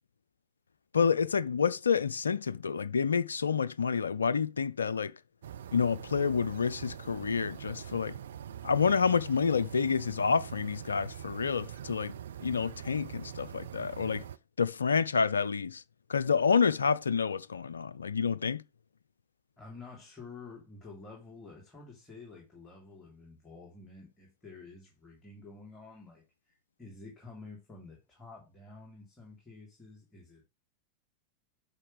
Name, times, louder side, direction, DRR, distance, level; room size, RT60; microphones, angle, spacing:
voice 1, 0.9-5.1 5.7-8.1 8.6-12.1 12.4-14.2 14.6-15.8 16.1-18.6, left 6 dB, 75° left, 0.4 m, -28 dB
sound 1, 5.4-14.4, right 10 dB, 65° right, 0.5 m, -44 dB
voice 2, 19.6-26.5 26.8-30.4, left 3 dB, 20° left, 3.4 m, -50 dB
9.8 x 5.9 x 3.5 m
figure-of-eight pair, 90°, 0 cm